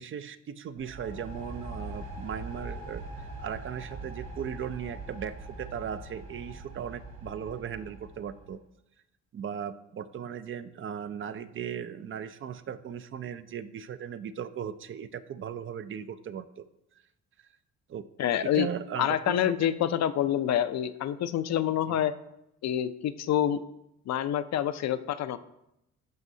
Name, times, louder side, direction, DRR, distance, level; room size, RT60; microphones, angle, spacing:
voice 1, 0.0-8.6 9.3-16.6 17.9-18.1 18.5-19.7 21.9-22.0, right 8 dB, 45° right, 13 dB, 0.4 m, -37 dB
sound 1, 0.8-8.5, right 2 dB, 70° right, 2.0 m, -42 dB
voice 2, 18.2-18.7 19.0-22.1 22.6-23.6 24.1-25.4, left 10 dB, 60° left, 12 dB, 0.5 m, -27 dB
12.0 x 5.3 x 2.7 m, 0.85 s
cardioid pair, 90°, 30 cm